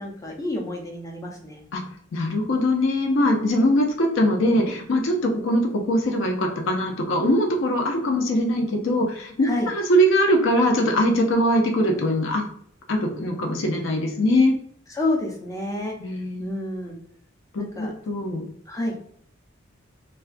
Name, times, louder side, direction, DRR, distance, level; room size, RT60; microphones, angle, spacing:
voice 1, 0.0-1.6 9.4-9.7 14.9-15.9 16.4-16.9 17.6-17.9 18.7-18.9, left 2 dB, 15° left, 0 dB, 0.5 m, -29 dB
voice 2, 2.1-12.4 12.9-14.6 16.0-16.5 17.5-18.5, equal, 65° left, 2 dB, 0.5 m, -22 dB
2.3 x 2.3 x 2.5 m, 0.63 s
head